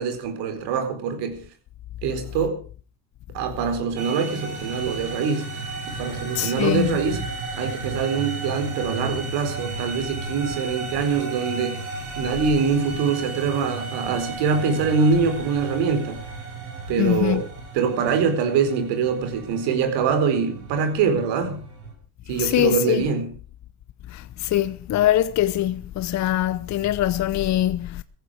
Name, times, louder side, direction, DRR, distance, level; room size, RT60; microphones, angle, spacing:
voice 1, 0.0-1.5 2.0-2.6 3.3-5.5 5.9-7.2 7.6-11.9 12.2-16.3 16.9-17.5 17.7-21.6 22.3-23.4, right 5 dB, 60° right, 4.6 m, -24 dB
sound 1, 4.0-21.9, right 3 dB, 85° right, 5.6 m, -34 dB
voice 2, 6.4-7.0 17.0-17.4 22.4-23.0 24.1-28.0, left 13 dB, 40° left, 0.9 m, -23 dB
17.0 x 15.0 x 5.0 m
hypercardioid pair, 75°, 45 cm